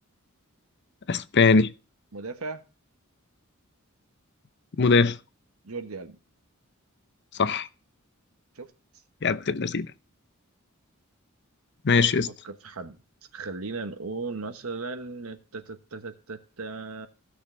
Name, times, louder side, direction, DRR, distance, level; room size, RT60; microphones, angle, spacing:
voice 1, 1.1-1.7 4.8-5.2 7.4-7.7 9.2-9.9 11.8-12.3, left 4 dB, 55° left, 0.7 m, -21 dB
voice 2, 2.1-2.6 5.6-6.2 8.6-8.7 11.9-13.0 13.3-17.1, right 3 dB, 80° right, 1.2 m, -37 dB
16.5 x 6.5 x 3.2 m
head